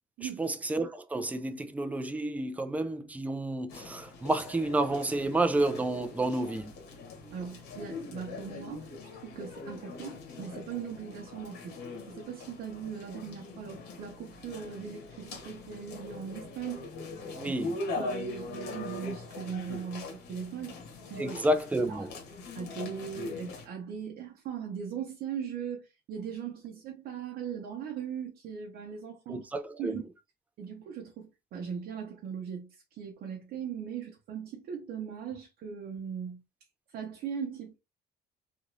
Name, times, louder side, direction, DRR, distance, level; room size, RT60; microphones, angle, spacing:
voice 1, 0.2-6.7 17.3-17.8 21.2-22.1 29.3-30.0, right 2 dB, 10° right, 0.4 m, -30 dB
sound 1, 3.7-23.6, left 3 dB, 80° left, 1.1 m, -42 dB
voice 2, 7.3-11.8 12.1-16.9 17.4-17.5 17.9-20.8 21.0-21.4 21.9-22.1 22.5-29.5 29.8-30.0 30.6-36.4 36.9-37.8, right 7 dB, 65° right, 0.8 m, -39 dB
3.0 x 2.6 x 2.5 m
cardioid pair, 110°, 17 cm